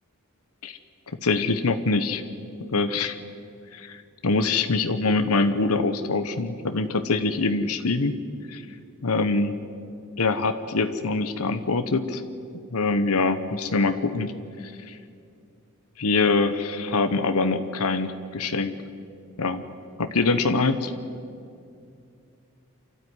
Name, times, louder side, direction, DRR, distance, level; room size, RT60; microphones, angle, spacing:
voice 1, 1.2-2.2 2.6-3.2 3.7-8.1 8.5-8.6 9.0-9.6 10.2-12.2 12.7-14.3 14.6-15.0 16.0-18.7 19.4-19.6 20.0-20.9, left 3 dB, 85° left, 9 dB, 1.0 m, -24 dB
27.0 x 13.0 x 9.7 m, 2.4 s
head